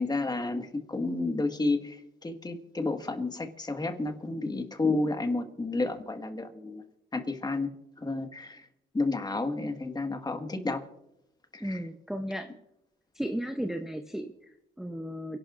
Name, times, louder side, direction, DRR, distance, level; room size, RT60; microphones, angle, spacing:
voice 1, 0.0-6.8 7.1-7.7 8.0-8.7 8.9-10.8 11.5-11.8, left 2 dB, 20° left, 6 dB, 1.6 m, -31 dB
voice 2, 11.6-12.5 13.1-15.4, equal, ahead, 6 dB, 0.8 m, -35 dB
29.0 x 11.5 x 2.5 m, 0.85 s
cardioid pair, 90°, 20 cm